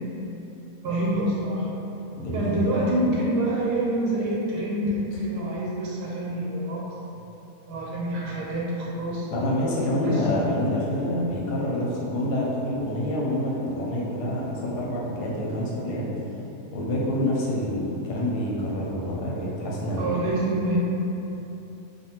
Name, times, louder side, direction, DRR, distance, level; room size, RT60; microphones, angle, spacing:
voice 1, 0.8-1.7 2.3-6.8 7.7-9.3 10.0-10.5 19.9-20.8, right 1 dB, 80° right, -5 dB, 1.2 m, -27 dB
voice 2, 2.2-2.6 9.3-16.1 16.7-20.2, left 1 dB, 90° left, -4 dB, 1.2 m, -27 dB
2.6 x 2.5 x 2.8 m, 2.9 s
omnidirectional pair, 1.7 m